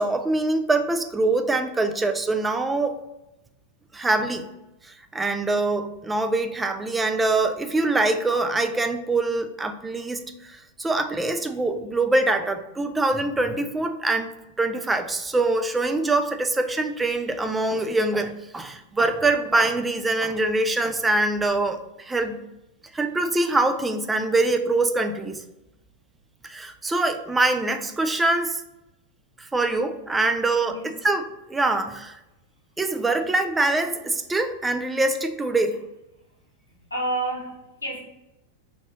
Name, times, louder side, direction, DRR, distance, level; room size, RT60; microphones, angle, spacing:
voice 1, 0.0-3.0 3.9-4.5 5.1-14.3 14.6-22.4 22.9-25.4 26.5-28.6 29.4-31.2 31.5-32.2 32.8-35.8, right 2 dB, 10° right, 8 dB, 0.3 m, -24 dB
voice 2, 30.6-30.9 36.9-38.0, right 2 dB, 80° left, -1 dB, 0.7 m, -29 dB
2.8 x 2.8 x 3.0 m, 0.94 s
figure-of-eight pair, 90°, 0 cm